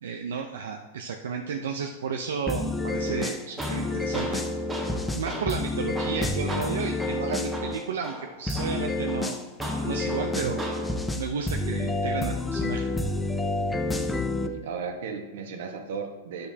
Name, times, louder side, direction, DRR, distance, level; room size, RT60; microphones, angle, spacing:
voice 1, 0.0-4.4 5.1-9.4 9.8-10.6 11.2-12.9, right 6 dB, 90° right, 3 dB, 0.6 m, -32 dB
sound 1, 2.5-7.8 8.5-14.5, left 2 dB, 5° left, 0.5 m, -29 dB
Tools, 3.1-11.1, right 1 dB, 10° right, 1.5 m, -38 dB
voice 2, 9.9-10.5 14.3-16.5, right 5 dB, 70° right, 5 dB, 1.2 m, -36 dB
10.5 x 6.6 x 2.8 m, 1.2 s
supercardioid pair, 145°, 0 cm